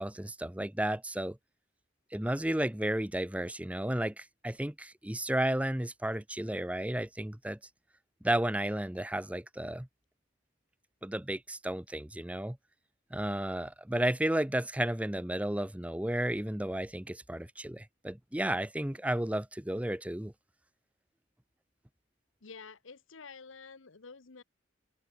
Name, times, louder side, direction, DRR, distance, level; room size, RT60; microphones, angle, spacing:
voice 1, 0.0-1.4 2.1-7.6 8.2-9.9 11.0-12.6 13.1-20.3, right 1 dB, 5° right, 0.7 m, -33 dB
voice 2, 22.4-24.4, left 5 dB, 75° left, 1.0 m, -49 dB
head